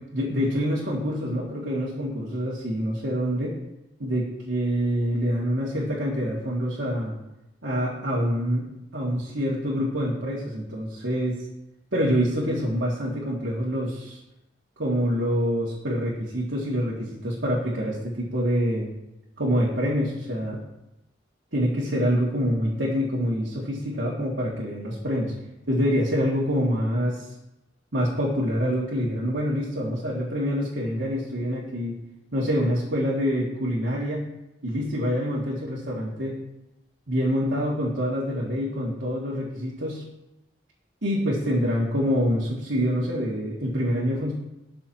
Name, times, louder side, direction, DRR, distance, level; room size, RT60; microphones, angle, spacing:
voice 1, 0.1-3.6 4.0-7.1 7.6-8.7 8.9-11.4 11.9-14.2 14.8-18.9 19.4-20.6 21.5-25.3 25.7-27.3 27.9-31.9 32.3-34.3 34.6-36.4 37.1-40.0 41.0-44.3, equal, 85° right, -6 dB, 2.3 m, -26 dB
19.5 x 6.8 x 3.0 m, 0.92 s
head